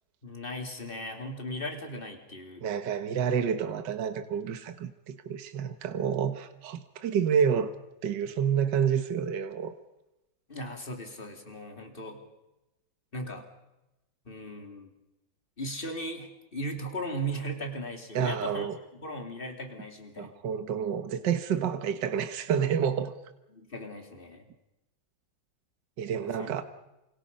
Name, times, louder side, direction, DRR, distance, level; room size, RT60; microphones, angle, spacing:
voice 1, 0.2-2.7 10.5-12.2 13.1-13.4 14.2-14.9 15.6-18.7 18.9-20.3 23.5-24.5 26.2-26.6, equal, 25° left, 4 dB, 3.2 m, -37 dB
voice 2, 2.6-7.7 8.0-9.7 18.2-18.8 20.2-23.1 26.0-26.6, right 7 dB, 65° right, 9 dB, 1.8 m, -29 dB
29.5 x 26.5 x 5.5 m, 0.95 s
omnidirectional pair, 2.1 m